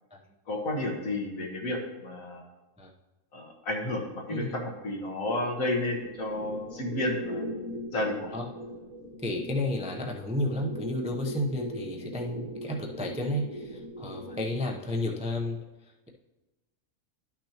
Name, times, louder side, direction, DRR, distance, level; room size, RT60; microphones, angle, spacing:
voice 1, 0.5-2.4 3.3-7.5 7.9-8.4, left 1 dB, 70° left, 0 dB, 1.8 m, -32 dB
sound 1, 5.4-15.2, equal, 30° right, 1.0 m, -40 dB
voice 2, 9.2-15.6, left 1 dB, 10° right, 0 dB, 0.3 m, -32 dB
11.5 x 6.0 x 2.9 m, 1.1 s
omnidirectional pair, 1.5 m